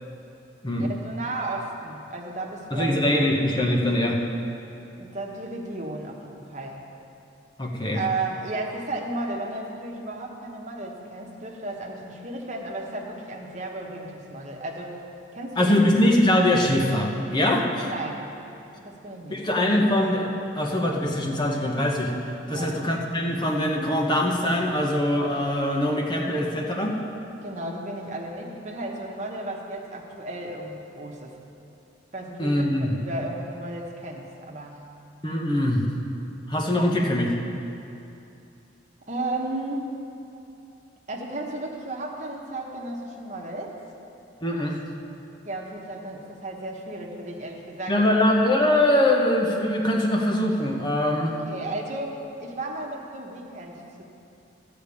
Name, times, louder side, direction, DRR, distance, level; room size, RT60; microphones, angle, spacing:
voice 1, 0.8-3.2 5.0-6.8 7.9-15.0 15.3-15.9 17.8-18.3 18.8-19.4 22.5-22.8 27.4-31.4 32.1-34.8 39.1-39.9 41.1-43.8 45.4-48.0 51.3-54.0, right 2 dB, 40° right, -1 dB, 1.2 m, -34 dB
voice 2, 2.7-4.2 7.6-8.0 15.6-17.9 19.3-22.1 22.5-27.0 32.4-32.9 35.2-35.8 36.5-37.3 44.4-44.8 47.9-51.4, left 1 dB, 25° left, 0 dB, 1.0 m, -22 dB
12.5 x 5.1 x 8.5 m, 2.8 s
head